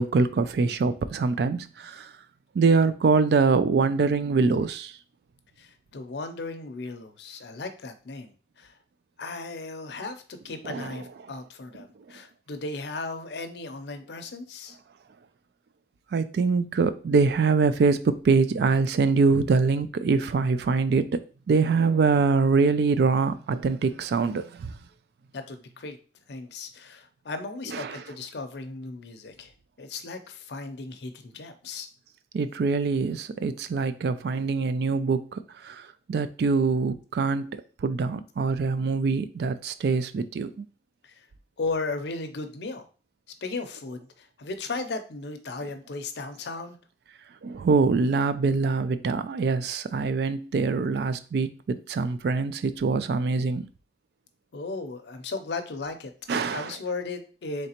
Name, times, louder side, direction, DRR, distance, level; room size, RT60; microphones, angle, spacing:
voice 1, 0.0-2.1 2.5-4.9 10.6-11.0 16.1-21.2 21.5-24.7 27.7-28.0 32.3-40.7 47.4-53.6 56.3-56.8, right 4 dB, 65° right, 0.3 m, -24 dB
voice 2, 5.6-8.8 9.2-14.8 25.3-26.0 26.3-31.9 41.0-41.3 41.6-42.9 43.4-46.8 54.5-56.1 56.5-57.7, left 3 dB, 70° left, 0.6 m, -36 dB
3.9 x 3.2 x 2.9 m
head